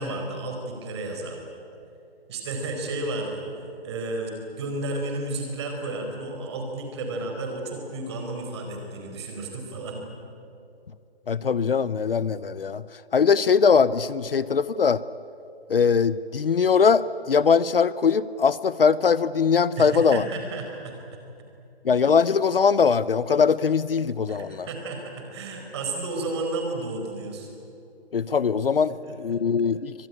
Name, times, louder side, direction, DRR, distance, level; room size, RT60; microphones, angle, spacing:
voice 1, 0.0-1.4 2.3-3.4 3.8-10.1 19.8-21.2 24.3-27.5 29.0-29.4, right 2 dB, 25° right, 3 dB, 4.4 m, -32 dB
voice 2, 11.3-12.8 13.1-15.0 15.7-20.3 21.8-24.7 28.1-29.9, left 6 dB, 60° left, 18 dB, 0.7 m, -21 dB
24.5 x 19.5 x 9.8 m, 2.8 s
hypercardioid pair, 160°, 32 cm